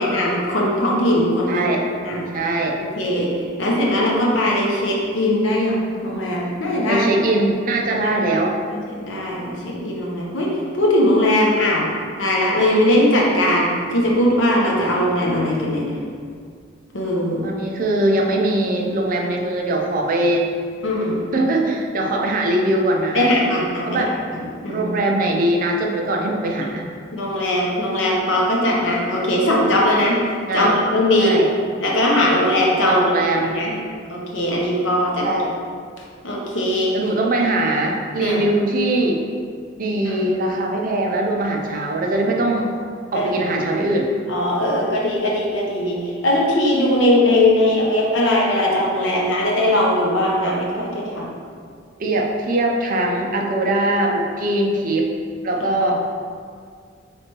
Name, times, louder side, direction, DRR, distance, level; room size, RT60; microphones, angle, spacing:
voice 1, 0.0-1.7 2.0-2.3 3.0-7.1 8.7-11.9 12.2-16.0 16.9-17.5 20.8-21.2 23.1-24.1 24.3-24.9 26.6-26.8 27.1-30.2 30.5-31.4 31.8-33.0 33.4-33.7 34.1-35.3 36.2-37.0 38.2-38.5 40.1-40.3 43.1-43.5 44.3-51.3, left 1 dB, 85° left, -3 dB, 0.8 m, -20 dB
voice 2, 1.5-1.8 2.3-2.8 6.9-8.6 17.4-20.5 21.3-23.3 23.8-24.1 24.7-26.8 30.5-30.7 31.2-31.5 32.9-33.6 35.2-35.5 36.9-39.2 39.8-42.7 43.1-44.1 52.0-55.1 55.4-56.0, right 1 dB, 45° right, 1 dB, 0.5 m, -21 dB
4.3 x 3.3 x 2.9 m, 2.1 s
head